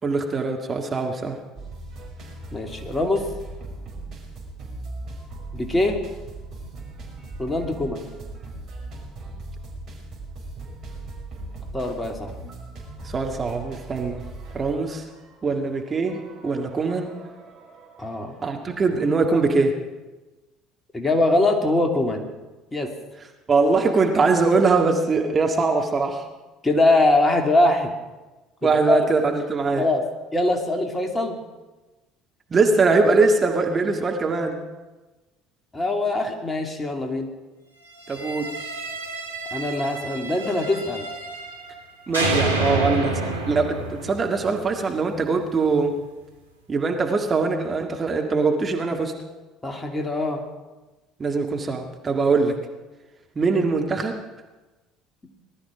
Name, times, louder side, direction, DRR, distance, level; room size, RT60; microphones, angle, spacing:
voice 1, 0.0-1.4 13.0-14.2 14.5-15.1 15.4-17.1 18.4-19.8 23.5-26.3 28.6-29.9 32.5-34.6 38.1-38.5 42.1-46.0 46.7-49.1 51.2-52.6 53.4-54.2, right 4 dB, 30° right, 3 dB, 1.9 m, -22 dB
sound 1, 1.5-19.2, right 2 dB, 45° right, 5.0 m, -39 dB
voice 2, 2.5-3.3 5.5-6.0 7.4-8.1 11.7-12.3 18.0-18.4 20.9-22.3 22.7-22.9 26.6-27.9 28.9-29.1 29.8-30.0 30.3-31.4 35.7-37.3 39.5-41.1 49.6-50.4, left 2 dB, 15° left, 3 dB, 2.5 m, -22 dB
sound 2, 38.0-41.8 42.1-45.2, right 2 dB, 85° right, 1.4 m, -29 dB
19.5 x 12.5 x 5.1 m, 1.2 s
figure-of-eight pair, 60°, 0 cm